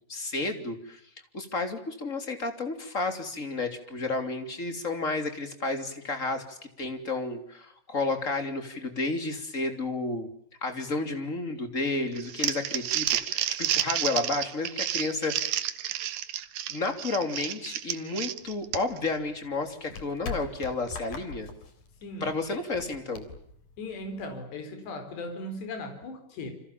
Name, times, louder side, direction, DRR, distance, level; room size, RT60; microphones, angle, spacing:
voice 1, 0.1-1.0 1.3-10.3 10.6-15.7 16.7-21.5 22.2-23.3, left 3 dB, 20° left, 7 dB, 3.0 m, -31 dB
Crumpling crinkling, 12.2-19.1, right 12 dB, 65° right, 2.5 m, -30 dB
sound 1, 18.4-24.4, left 4 dB, 50° left, 4.5 m, -43 dB
voice 2, 22.0-22.6 23.8-26.5, left 2 dB, 70° left, 6 dB, 6.5 m, -38 dB
29.0 x 26.0 x 7.2 m, 0.69 s
omnidirectional pair, 5.1 m